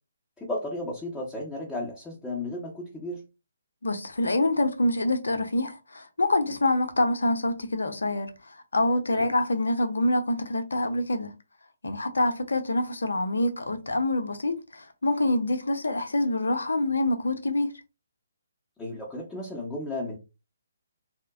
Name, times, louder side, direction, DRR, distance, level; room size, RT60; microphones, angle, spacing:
voice 1, 0.4-3.2 9.1-9.3 18.8-20.2, left 1 dB, 5° left, 0.9 m, -34 dB
voice 2, 3.8-11.3 11.8-17.7, left 1 dB, 70° left, 0.7 m, -26 dB
2.9 x 2.1 x 3.6 m
figure-of-eight pair, 140°, 0 cm